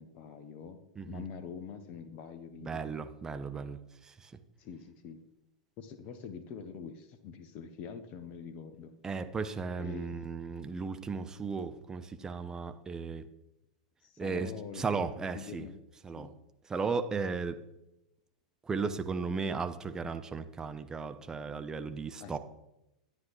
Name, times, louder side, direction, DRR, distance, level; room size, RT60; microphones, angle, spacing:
voice 1, 0.0-0.8 1.1-2.8 4.6-5.2 5.8-8.9 9.8-10.2 14.0-15.8 16.2-16.4 22.2-22.4, left 6 dB, 40° left, 9 dB, 1.0 m, -45 dB
voice 2, 2.6-4.3 9.0-13.3 14.2-15.7 16.0-16.3 16.7-17.6 18.7-22.4, right 5 dB, 15° right, 9 dB, 0.7 m, -35 dB
12.5 x 9.5 x 3.1 m, 0.91 s
figure-of-eight pair, 95°, 4 cm